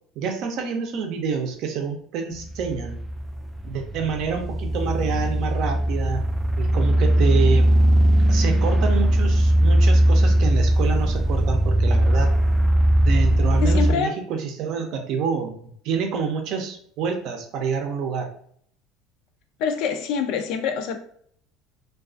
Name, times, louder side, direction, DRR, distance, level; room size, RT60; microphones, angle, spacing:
voice 1, 0.2-3.0 3.6-6.2 6.6-7.7 8.3-12.3 13.0-18.3, right 6 dB, 60° right, 0.5 m, -28 dB
sound 1, 2.4-13.9, right 1 dB, 5° right, 0.3 m, -19 dB
voice 2, 13.6-14.1 19.6-21.0, left 6 dB, 65° left, 0.4 m, -25 dB
2.3 x 2.3 x 2.4 m
cardioid pair, 130°, 0 cm